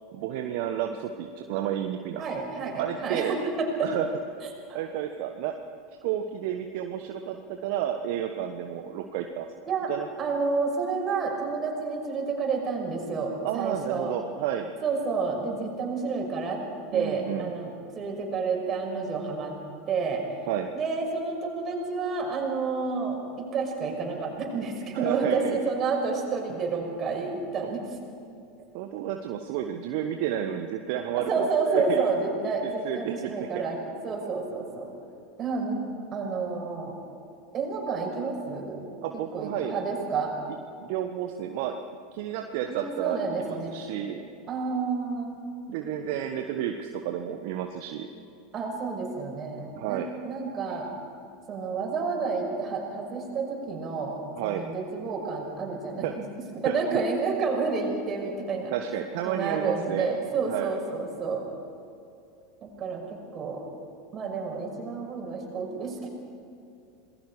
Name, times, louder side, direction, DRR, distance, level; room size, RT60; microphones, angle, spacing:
voice 1, 0.1-2.3 2.8-3.4 3.8-4.1 4.7-5.5 6.0-9.5 9.9-10.1 13.4-14.7 16.9-17.5 20.4-20.7 24.9-25.6 28.7-32.1 32.8-33.5 39.0-39.7 40.8-41.8 42.1-44.2 45.7-48.1 49.8-50.1 54.3-54.6 56.0-56.1 56.6-56.7 58.7-60.1 60.5-60.7, right 10 dB, 55° right, 5 dB, 1.1 m, -31 dB
voice 2, 2.2-3.9 4.7-4.8 9.7-9.9 10.2-14.1 14.8-16.6 16.9-19.5 19.9-20.2 20.7-23.2 23.5-27.8 31.1-33.8 34.0-34.9 35.4-35.8 36.1-36.9 37.5-38.8 39.1-40.3 42.7-43.7 44.5-45.4 48.5-50.9 51.5-56.3 56.6-58.7 59.2-61.4 62.6-63.6 64.1-66.1, right 4 dB, 35° right, 0 dB, 5.9 m, -30 dB
27.0 x 19.5 x 4.9 m, 2.6 s
figure-of-eight pair, 80°, 0 cm